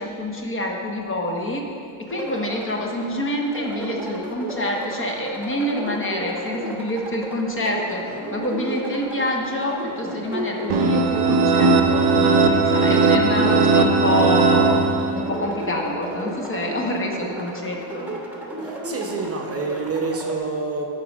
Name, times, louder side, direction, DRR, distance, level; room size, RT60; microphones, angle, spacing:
voice 1, 0.0-1.7 2.0-8.1 8.3-14.8 15.2-18.1, left 1 dB, 25° left, 1 dB, 0.7 m, -27 dB
sound 1, 2.1-20.4, right 1 dB, 5° right, 0.9 m, -33 dB
sound 2, 10.7-15.4, right 4 dB, 80° right, 0.7 m, -18 dB
voice 2, 18.6-20.9, right 4 dB, 30° right, 1 dB, 0.7 m, -27 dB
8.4 x 3.9 x 5.0 m, 2.5 s
cardioid pair, 125°, 49 cm